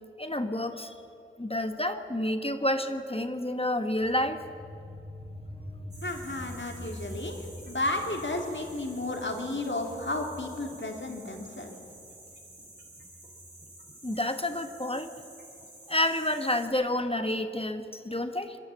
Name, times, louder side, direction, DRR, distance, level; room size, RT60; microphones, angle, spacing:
voice 1, 0.2-0.9 1.4-4.4 14.0-15.1 15.9-18.6, left 1 dB, 30° left, 8 dB, 1.3 m, -29 dB
sound 1, 4.0-15.1, equal, 85° left, 6.4 m, -46 dB
sound 2, 5.9-16.7, right 1 dB, 55° right, 3.9 m, -51 dB
voice 2, 6.0-11.7, left 2 dB, 65° left, 2 dB, 2.8 m, -33 dB
26.0 x 11.5 x 8.9 m, 2.7 s
wide cardioid pair, 40°, 20 cm